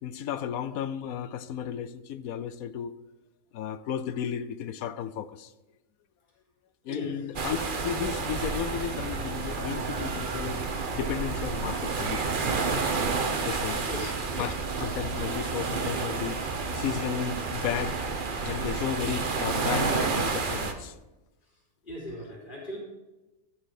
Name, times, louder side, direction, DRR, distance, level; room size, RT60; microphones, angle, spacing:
voice 1, 0.0-2.9 3.5-5.5 6.8-12.5 13.4-14.5 14.8-18.0 18.4-21.0, left 9 dB, 75° left, 1.1 m, -34 dB
sound 1, 7.4-20.7, right 4 dB, 40° right, 1.1 m, -30 dB
voice 2, 21.8-22.8, left 1 dB, 35° left, 3.8 m, -37 dB
14.0 x 6.1 x 6.5 m
omnidirectional pair, 1.5 m